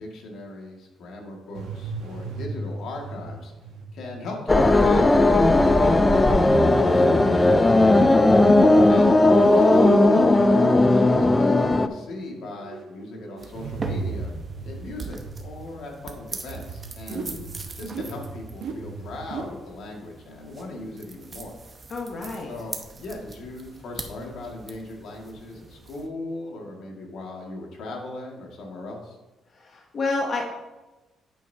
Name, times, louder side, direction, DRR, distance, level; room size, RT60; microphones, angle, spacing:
voice 1, 0.0-3.5 3.9-8.2 8.9-9.2 9.5-14.3 14.6-17.2 17.8-21.6 22.5-29.2, left 2 dB, 70° left, 0 dB, 2.0 m, -38 dB
sound 1, 1.6-4.2 5.4-8.7 9.3-15.8 16.5-19.5, right 4 dB, 80° right, 1.1 m, -34 dB
sound 2, 4.5-11.9, left 2 dB, 15° left, 0.3 m, -17 dB
voice 2, 8.6-9.0 17.1-17.4 21.9-22.5 29.5-30.4, left 3 dB, 40° left, 0 dB, 0.9 m, -30 dB
sound 3, 13.4-26.1, right 3 dB, 25° right, 0.8 m, -42 dB
9.1 x 8.1 x 2.8 m, 1.1 s
cardioid pair, 165°, 0 cm